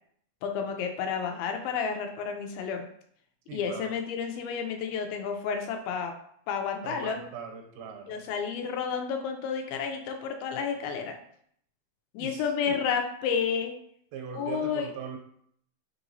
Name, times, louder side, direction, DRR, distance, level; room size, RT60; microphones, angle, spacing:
voice 1, 0.4-2.9 3.5-6.1 6.5-7.2 8.1-11.2 12.1-13.7 14.3-14.9, left 6 dB, 85° left, 4 dB, 2.4 m, -31 dB
voice 2, 3.5-3.9 6.8-8.2 12.2-12.8 14.1-15.2, right 6 dB, 85° right, 3 dB, 2.4 m, -40 dB
5.5 x 2.9 x 2.6 m, 0.66 s
omnidirectional pair, 4.2 m